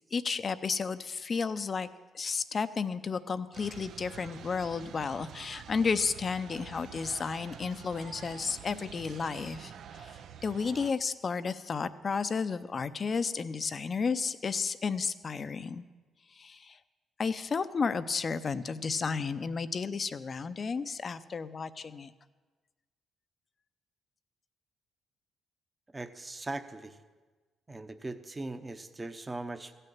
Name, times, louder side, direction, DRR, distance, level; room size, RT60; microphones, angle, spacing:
voice 1, 0.1-1.9 2.1-15.8 16.4-16.8 17.2-22.1, left 5 dB, 40° left, 13 dB, 0.6 m, -32 dB
sound 1, 3.5-10.9, right 8 dB, 70° right, 0.6 m, -47 dB
voice 2, 25.9-27.0 27.7-29.7, right 2 dB, 20° right, 10 dB, 0.9 m, -39 dB
15.5 x 6.7 x 8.7 m, 1.3 s
cardioid pair, 90°, 0 cm